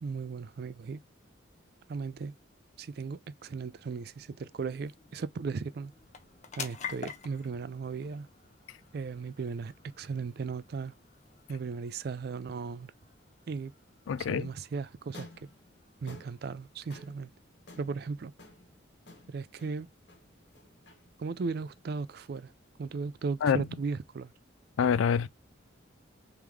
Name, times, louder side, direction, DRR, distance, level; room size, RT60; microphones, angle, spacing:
voice 1, 0.0-1.0 1.9-2.3 2.8-5.9 6.6-8.3 8.9-10.9 11.5-12.9 13.5-13.7 14.3-15.5 16.0-17.3 17.8-18.3 19.3-19.9 21.2-22.5 22.8-24.3, right 4 dB, 50° right, 0.3 m, -36 dB
sound 1, 3.2-18.0, left 6 dB, 35° left, 0.7 m, -49 dB
voice 2, 14.1-14.5 23.4-23.7 24.8-25.3, left 7 dB, 85° left, 0.3 m, -26 dB
sound 2, 15.0-23.3, left 2 dB, 60° left, 1.4 m, -55 dB
3.5 x 3.5 x 3.1 m
head